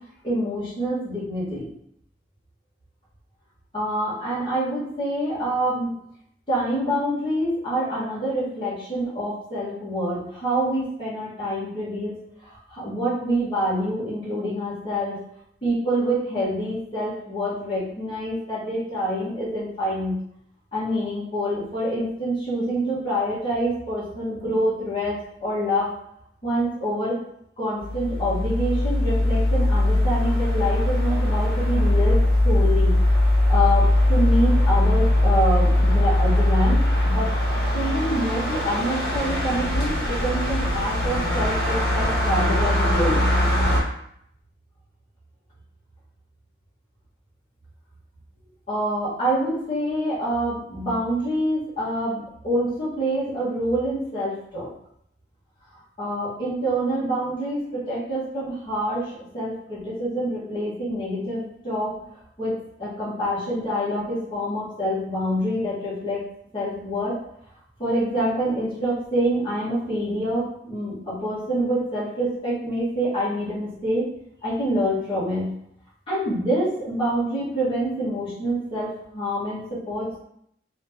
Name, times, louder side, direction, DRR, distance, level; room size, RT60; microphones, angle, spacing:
voice 1, 0.2-1.7 3.7-5.9 6.5-12.1 12.4-15.2 15.6-20.2 20.7-25.9 26.4-27.2 27.6-33.0 33.5-37.3 37.7-43.2 48.7-54.7 56.0-66.2 66.5-67.2 67.8-74.1 74.4-75.5 76.1-80.2, equal, 30° left, -10 dB, 1.4 m, -26 dB
sound 1, 27.8-43.8, left 1 dB, 65° left, 1.2 m, -21 dB
3.0 x 2.9 x 3.5 m, 0.72 s
head